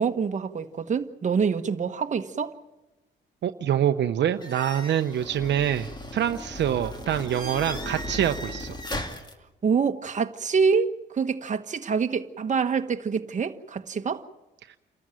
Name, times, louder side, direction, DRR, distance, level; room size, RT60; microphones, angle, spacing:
voice 1, 0.0-2.5 9.6-14.2, right 5 dB, 40° right, 1.3 m, -26 dB
voice 2, 3.4-8.8 14.7-14.8, right 10 dB, 65° right, 0.8 m, -25 dB
sound 1, 4.4-9.3, left 1 dB, 20° left, 2.5 m, -36 dB
29.0 x 13.5 x 9.1 m
cardioid pair, 90°, 20 cm